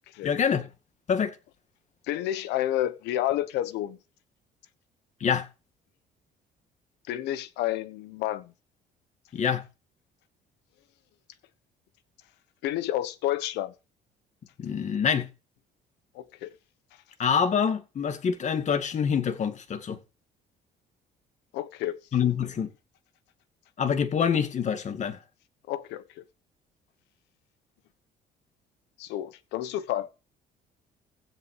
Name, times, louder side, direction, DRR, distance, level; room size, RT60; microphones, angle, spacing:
voice 1, 0.2-0.7 1.1-1.3 5.2-5.4 9.3-9.6 14.6-15.3 17.2-20.0 22.1-22.7 23.8-25.2, left 7 dB, 45° left, 2.1 m, -26 dB
voice 2, 2.1-4.0 7.1-8.5 12.6-13.7 16.1-16.5 21.5-22.0 25.7-26.2 29.0-30.1, left 13 dB, 90° left, 1.2 m, -30 dB
15.5 x 6.7 x 4.9 m
cardioid pair, 110°, 17 cm